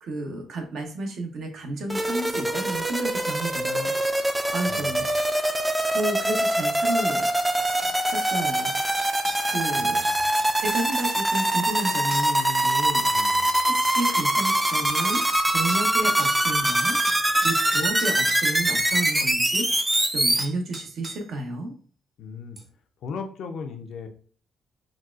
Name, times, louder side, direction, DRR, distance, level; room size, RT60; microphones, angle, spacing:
voice 1, 0.0-4.0 4.2-5.1 5.9-7.3 8.0-8.7 9.5-10.0 10.6-13.1 13.7-17.0 17.4-19.7 20.1-21.7, right 2 dB, 70° right, 3 dB, 0.7 m, -31 dB
sound 1, 1.9-20.4, right 1 dB, 10° right, 0.4 m, -23 dB
voice 2, 4.6-5.0 9.7-10.2 13.1-13.5 22.2-22.6 23.0-24.1, left 5 dB, 75° left, 6 dB, 0.5 m, -37 dB
sound 2, 7.0-7.1 7.8-8.0 8.7-9.5 10.0-11.8 12.1-12.4 13.4-13.5 13.9-14.6 15.1-15.4 15.7-15.9 16.2-18.5 20.0-20.1 20.4-21.3 22.6-22.7, right 2 dB, 35° right, 0.7 m, -41 dB
3.9 x 2.3 x 2.4 m, 0.43 s
cardioid pair, 90°, 0 cm